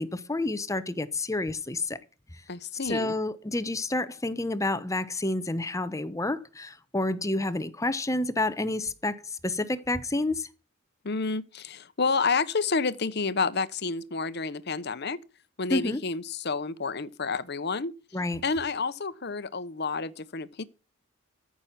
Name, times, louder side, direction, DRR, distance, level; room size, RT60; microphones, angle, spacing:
voice 1, 0.0-2.0 2.8-9.2 9.4-10.5 15.7-16.0 18.1-18.4, left 2 dB, 15° left, 0.8 m, -29 dB
voice 2, 2.5-3.1 11.0-15.2 15.6-17.9 18.4-20.6, left 4 dB, 55° left, 1.0 m, -29 dB
14.5 x 6.2 x 5.8 m
head